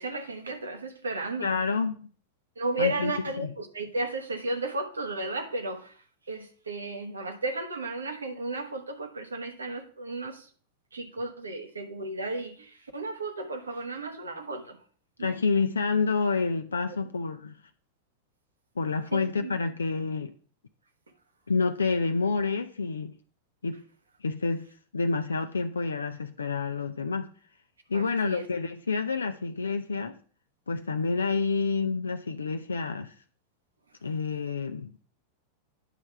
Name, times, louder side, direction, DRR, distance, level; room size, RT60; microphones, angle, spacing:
voice 1, 0.0-1.5 2.6-5.9 6.3-10.5 10.9-14.8 15.2-15.4 19.1-19.5 27.9-28.5, right 2 dB, 75° right, 1.2 m, -34 dB
voice 2, 1.4-2.1 2.8-3.1 3.4-3.5 15.2-17.6 18.8-20.3 21.5-23.1 23.6-23.8 24.2-24.7 24.9-27.3 27.9-30.2 30.7-33.1 34.0-34.9, left 4 dB, 75° left, 0.5 m, -28 dB
9.9 x 3.3 x 5.7 m
figure-of-eight pair, 90°, 0 cm